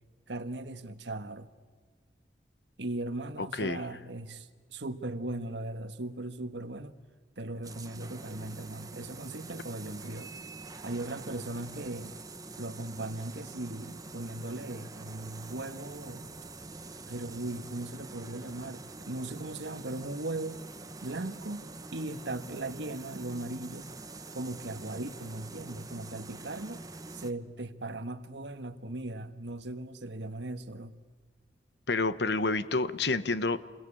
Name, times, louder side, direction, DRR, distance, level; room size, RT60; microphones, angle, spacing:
voice 1, 0.3-1.5 2.8-7.0 7.4-10.3 10.8-12.1 12.6-16.2 17.1-20.6 21.0-23.9 24.3-26.8 27.1-30.9, right 2 dB, 85° right, 9 dB, 1.5 m, -38 dB
voice 2, 3.4-3.8 31.9-33.6, left 3 dB, 70° left, 14 dB, 1.0 m, -29 dB
sound 1, 7.6-27.3, right 3 dB, 20° right, 1.1 m, -45 dB
29.0 x 22.0 x 8.7 m, 1.5 s
head